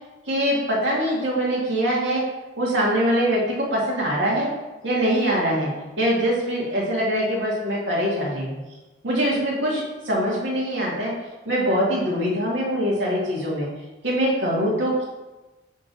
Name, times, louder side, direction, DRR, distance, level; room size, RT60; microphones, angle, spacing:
voice 1, 0.3-2.2 2.6-4.5 4.8-5.7 6.0-8.6 9.0-11.1 11.5-13.7 14.0-15.0, equal, 90° right, -5 dB, 1.9 m, -23 dB
6.6 x 3.7 x 3.9 m, 1.1 s
head